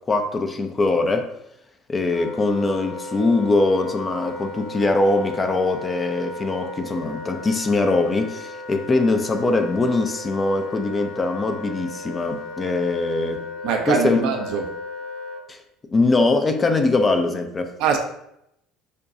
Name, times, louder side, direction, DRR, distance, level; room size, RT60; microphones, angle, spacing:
voice 1, 0.1-1.3 1.9-13.5 13.9-14.3 15.5-15.6 15.9-17.7, left 3 dB, 25° left, 0.5 m, -22 dB
Wind instrument woodwind instrument, 2.1-15.4, left 2 dB, 80° left, 0.6 m, -36 dB
voice 2, 13.6-14.8 17.8-18.0, right 6 dB, 60° right, 0.5 m, -23 dB
5.0 x 2.2 x 2.6 m
figure-of-eight pair, 60°, 0 cm